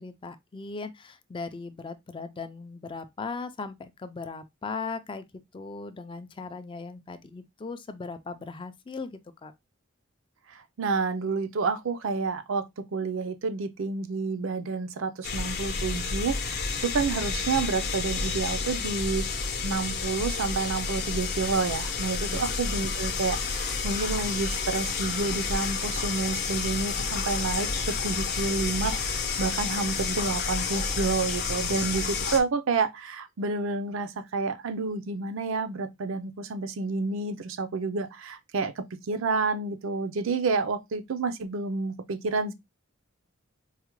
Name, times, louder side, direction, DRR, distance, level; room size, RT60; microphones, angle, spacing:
voice 1, 0.0-5.3 5.5-9.5 22.3-22.4, left 4 dB, 25° left, 0.3 m, -38 dB
voice 2, 10.5-19.2 19.6-42.5, right 4 dB, 75° right, 0.5 m, -29 dB
sound 1, 15.2-32.4, left 4 dB, 55° left, 0.7 m, -30 dB
4.7 x 2.1 x 3.0 m
head